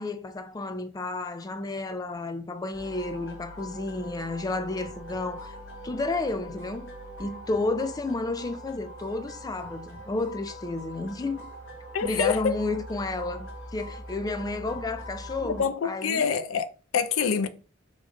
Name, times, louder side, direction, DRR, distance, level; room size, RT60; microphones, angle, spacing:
voice 1, 0.0-5.6 5.8-6.9 7.2-11.5 12.0-16.3, left 2 dB, 20° left, 0.3 m, -31 dB
sound 1, 2.7-15.6, equal, 65° left, 1.6 m, -42 dB
voice 2, 11.9-12.6 15.4-17.5, left 6 dB, 85° left, 0.4 m, -26 dB
3.5 x 2.6 x 3.7 m
head